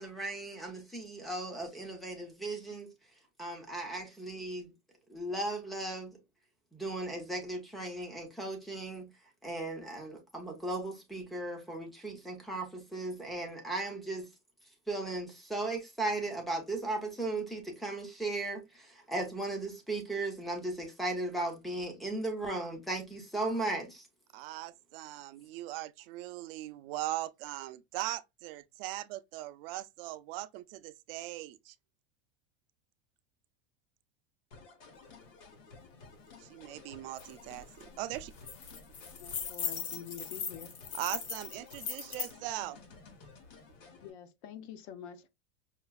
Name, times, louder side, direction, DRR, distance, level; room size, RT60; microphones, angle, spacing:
voice 1, 0.0-2.9 3.4-4.7 5.1-6.2 6.7-9.1 9.4-14.3 14.9-24.1, right 2 dB, ahead, 0.4 m, -36 dB
voice 2, 24.3-31.8 36.4-38.3 40.9-42.8, right 16 dB, 55° right, 0.4 m, -40 dB
sound 1, 34.5-44.1, left 4 dB, 80° left, 1.7 m, -54 dB
sound 2, 37.2-37.3 37.6-37.8 38.2-42.3, left 6 dB, 35° left, 0.8 m, -39 dB
voice 3, 39.1-40.8 44.0-45.3, left 9 dB, 65° left, 0.7 m, -47 dB
5.7 x 2.4 x 2.2 m
supercardioid pair, 175°, 35 cm